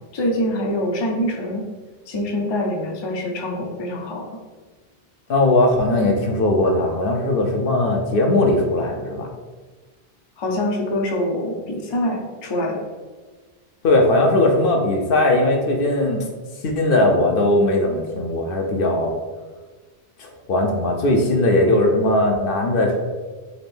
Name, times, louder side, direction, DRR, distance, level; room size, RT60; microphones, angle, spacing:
voice 1, 0.1-1.7 2.1-4.2 10.4-12.8, left 1 dB, 40° left, 1 dB, 0.4 m, -24 dB
voice 2, 5.3-9.3 13.8-16.3 16.6-19.1 20.2-23.0, left 1 dB, 65° left, 2 dB, 0.7 m, -19 dB
4.0 x 2.5 x 3.3 m, 1.3 s
omnidirectional pair, 1.1 m